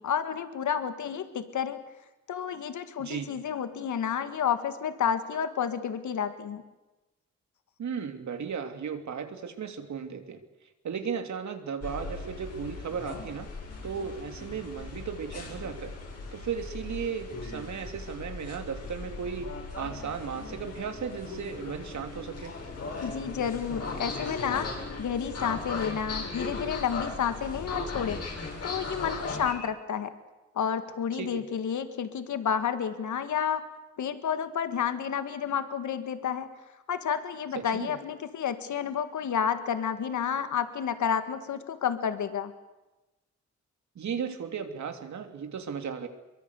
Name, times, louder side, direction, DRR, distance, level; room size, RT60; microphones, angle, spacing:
voice 1, 0.0-1.8 2.3-6.6 23.0-24.7 25.0-28.2 28.6-30.1 30.6-33.6 34.0-36.5 36.9-42.5, left 8 dB, 85° left, 10 dB, 1.9 m, -30 dB
voice 2, 3.0-3.3 7.8-10.4 10.8-13.5 13.8-15.9 16.3-22.6 31.2-31.4 37.5-37.9 43.9-46.1, right 6 dB, 75° right, 6 dB, 3.0 m, -35 dB
sound 1, 11.8-29.5, left 3 dB, 55° left, 7.7 m, -38 dB
23.5 x 23.0 x 8.3 m, 1.0 s
cardioid pair, 85°, 29 cm